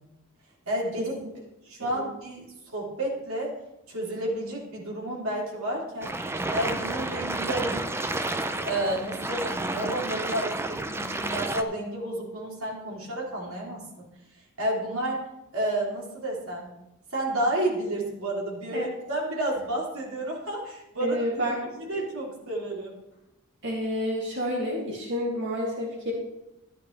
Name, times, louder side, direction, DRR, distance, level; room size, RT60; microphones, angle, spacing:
voice 1, 0.6-1.2 1.6-3.5 3.9-6.1 6.5-7.9 8.5-13.8 14.6-15.2 15.5-16.7 17.1-22.9, right 1 dB, 75° right, -3 dB, 3.3 m, -31 dB
sound 1, 6.0-11.6, right 2 dB, 10° right, 0.5 m, -31 dB
voice 2, 21.0-22.0 23.6-26.1, equal, 60° right, -3 dB, 2.5 m, -30 dB
12.5 x 10.0 x 3.4 m, 0.91 s
head